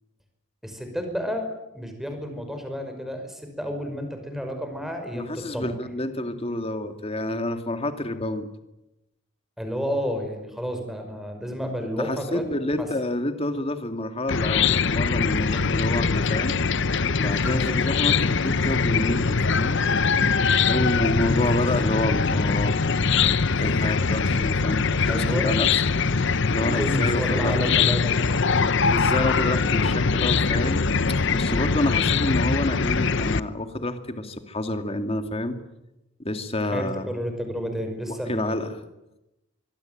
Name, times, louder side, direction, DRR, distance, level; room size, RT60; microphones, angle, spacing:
voice 1, 0.6-1.5 1.7-5.8 9.6-12.4 12.8-12.9 20.0-20.4 25.1-25.5 26.6-28.6 36.7-38.7, equal, ahead, 5 dB, 5.6 m, -31 dB
voice 2, 5.1-8.5 12.0-16.6 17.2-19.8 20.6-22.8 23.6-25.8 26.5-27.5 27.8-27.9 28.8-30.8 31.1-35.6 36.2-37.2 38.1-38.8, left 1 dB, 30° left, 7 dB, 2.3 m, -28 dB
Chicken rooster / Cricket, 14.3-33.4, left 5 dB, 60° left, 0.9 m, -22 dB
25.0 x 22.0 x 9.3 m, 0.93 s
head